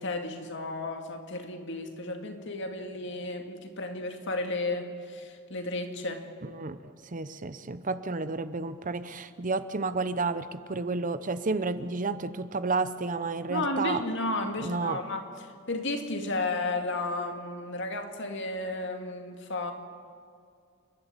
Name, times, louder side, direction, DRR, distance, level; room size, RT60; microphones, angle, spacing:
voice 1, 0.0-6.3 13.5-15.2 15.7-19.7, left 2 dB, 60° left, 5 dB, 2.2 m, -33 dB
voice 2, 6.4-14.0 14.6-15.0, right 3 dB, 40° right, 13 dB, 0.8 m, -31 dB
29.5 x 12.0 x 9.0 m, 2.3 s
head